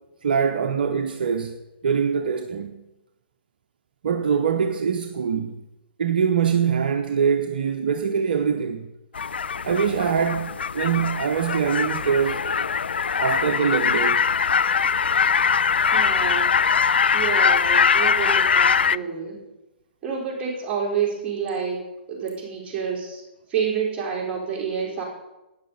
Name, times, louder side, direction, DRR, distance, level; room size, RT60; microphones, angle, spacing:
voice 1, 0.2-1.6 1.8-2.8 4.0-5.6 6.0-8.9 9.6-12.4 13.2-14.2, right 6 dB, 55° right, 0.8 m, -23 dB
sound 1, 9.1-19.0, left 6 dB, 70° left, 0.3 m, -22 dB
voice 2, 15.9-16.6 17.1-19.4 20.0-21.8 22.1-23.2 23.5-25.0, right 6 dB, 20° right, 4.8 m, -28 dB
13.0 x 9.6 x 5.7 m
figure-of-eight pair, 120°, 6 cm